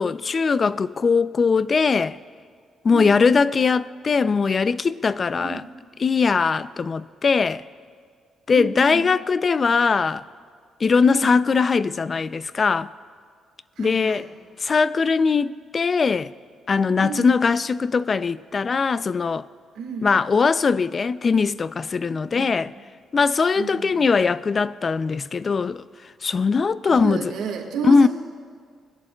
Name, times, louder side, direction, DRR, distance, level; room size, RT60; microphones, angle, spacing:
voice 1, 0.0-2.2 2.8-5.6 6.0-7.6 8.5-10.2 10.8-12.9 13.8-14.3 14.6-16.3 16.7-19.5 20.0-22.7 23.1-25.8 26.2-27.3 27.8-28.1, left 5 dB, 40° left, 0.3 m, -20 dB
voice 2, 8.5-9.0 11.0-11.4 13.8-14.2 17.0-17.3 19.7-20.1 22.3-22.6 23.5-24.1 26.8-28.1, right 6 dB, 80° right, 1.6 m, -32 dB
21.5 x 11.0 x 2.3 m
cardioid pair, 90°, 0 cm